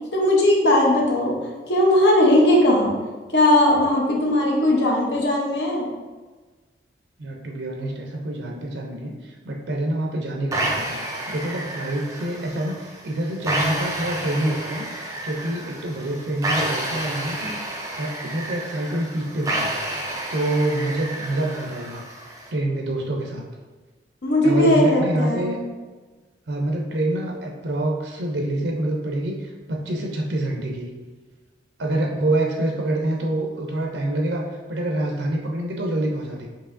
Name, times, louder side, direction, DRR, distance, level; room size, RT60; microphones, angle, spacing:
voice 1, 0.1-1.4 1.7-2.9 3.3-5.9 24.2-25.6, left 1 dB, 70° left, -2 dB, 0.8 m, -18 dB
voice 2, 7.2-19.7 20.3-22.0 22.5-23.4 24.4-25.6 26.5-30.9 31.8-36.5, right 1 dB, 75° right, 0 dB, 0.5 m, -26 dB
sound 1, 10.5-22.5, right 1 dB, 20° right, 0.4 m, -30 dB
4.6 x 2.9 x 2.5 m, 1.3 s
head